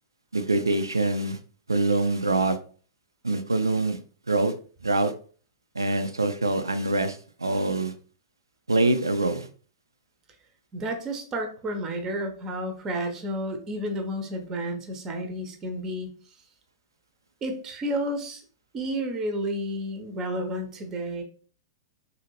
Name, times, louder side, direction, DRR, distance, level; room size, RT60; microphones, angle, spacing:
voice 1, 0.3-1.4 1.7-2.6 3.2-4.0 4.3-4.5 4.8-5.1 5.8-7.9 8.7-9.5, right 2 dB, 80° right, 9 dB, 0.4 m, -24 dB
voice 2, 10.7-16.1 17.4-18.4 18.7-21.2, equal, 25° right, 4 dB, 0.6 m, -31 dB
2.7 x 2.6 x 2.8 m, 0.42 s
figure-of-eight pair, 105°, 2 cm